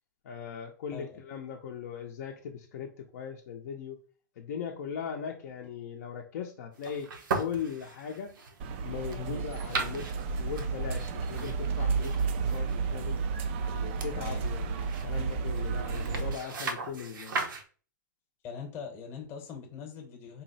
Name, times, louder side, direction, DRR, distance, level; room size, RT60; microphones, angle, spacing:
voice 1, 0.2-4.0 4.4-7.1 7.3-8.4 8.8-10.1 10.4-13.2 13.7-17.4, left 7 dB, 50° left, 1 dB, 0.6 m, -39 dB
sound 1, 6.7-17.6, right 4 dB, 75° right, 0.8 m, -39 dB
sound 2, 8.6-16.3, right 5 dB, 35° right, 0.3 m, -32 dB
voice 2, 14.1-14.5 18.4-20.4, left 6 dB, 20° left, 2 dB, 0.9 m, -42 dB
4.0 x 2.0 x 4.0 m, 0.38 s
hypercardioid pair, 155°, 11 cm